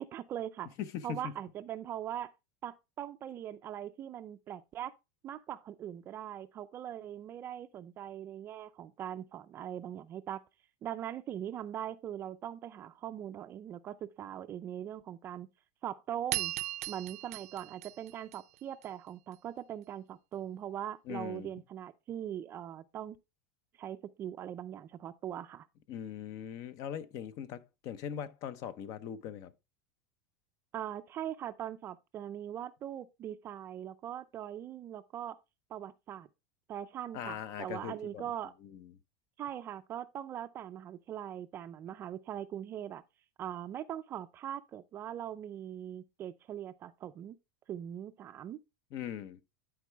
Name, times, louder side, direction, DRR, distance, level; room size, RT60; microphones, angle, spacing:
voice 1, 0.0-0.7 1.0-2.3 2.6-4.9 5.2-10.4 10.8-15.5 15.8-16.5 16.9-23.2 23.8-25.7 30.7-35.4 35.7-36.3 36.7-38.5 39.4-43.0 43.4-47.4 47.7-48.6, right 10 dB, 25° right, 0.4 m, -41 dB
voice 2, 0.8-1.3 21.1-21.5 25.9-29.5 37.1-38.2 38.6-38.9 48.9-49.4, left 9 dB, 45° left, 0.7 m, -41 dB
sound 1, 16.3-18.9, right 16 dB, 80° right, 0.5 m, -38 dB
11.5 x 4.7 x 3.4 m
supercardioid pair, 155°, 8 cm